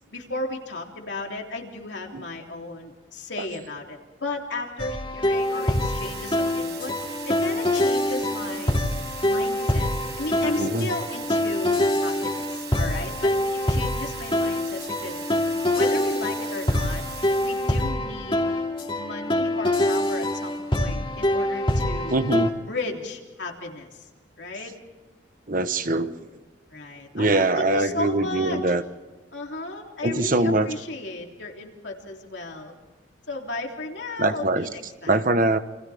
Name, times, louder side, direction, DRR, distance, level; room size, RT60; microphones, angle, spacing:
voice 1, 0.1-6.9 7.2-8.8 9.2-9.9 10.2-15.2 15.7-17.0 17.4-18.5 19.0-22.2 22.7-24.1 24.4-24.7 26.7-28.7 29.3-32.7 33.3-35.2, left 2 dB, 70° left, 1 dB, 3.4 m, -34 dB
sound 1, 4.8-22.5, left 1 dB, 30° left, 2.8 m, -25 dB
sound 2, 5.2-17.9, right 8 dB, 65° right, 5.1 m, -41 dB
voice 2, 10.5-10.9 22.1-22.5 25.5-26.1 27.1-28.8 30.0-30.7 34.2-34.7 35.1-35.6, right 2 dB, 45° right, 10 dB, 1.2 m, -22 dB
29.0 x 27.0 x 3.6 m, 1.3 s
head